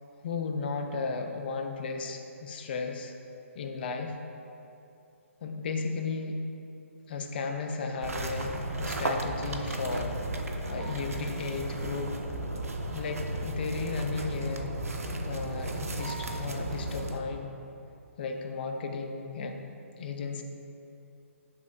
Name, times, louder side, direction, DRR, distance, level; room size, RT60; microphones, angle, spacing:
voice 1, 0.2-3.1 3.6-4.2 5.4-6.4 7.1-12.1 12.9-17.5 18.2-19.6 20.0-20.4, left 4 dB, 45° left, 4 dB, 0.4 m, -35 dB
sound 1, 8.0-17.2, right 1 dB, 80° right, 0.4 m, -34 dB
sound 2, 8.2-17.4, right 2 dB, 35° right, 1.3 m, -46 dB
6.9 x 3.2 x 2.3 m, 2.8 s
figure-of-eight pair, 140°, 8 cm